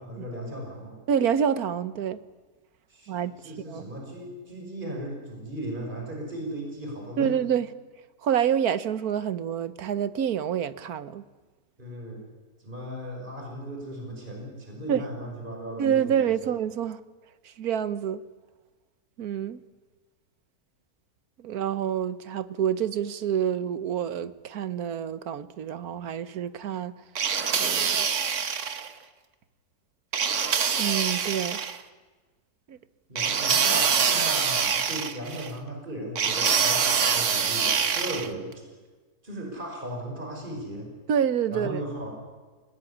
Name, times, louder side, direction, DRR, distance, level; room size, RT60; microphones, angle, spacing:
voice 1, 0.0-1.0 2.9-7.3 11.8-12.3 12.6-16.5 33.1-38.5 39.2-40.9 41.5-42.1, right 1 dB, 30° right, 5.7 m, -37 dB
voice 2, 1.1-2.2 3.1-3.3 3.7-3.9 7.2-7.7 8.2-11.2 14.9-15.0 15.8-17.0 17.4-18.2 19.2-19.6 21.4-26.9 27.5-28.1 30.7-31.6 32.7-32.8 41.1-41.8, right 8 dB, 75° right, 1.5 m, -27 dB
sound 1, 27.2-28.9 30.1-31.8 33.2-35.5 36.2-38.3, right 6 dB, 55° right, 1.5 m, -25 dB
28.0 x 19.0 x 9.9 m
omnidirectional pair, 1.6 m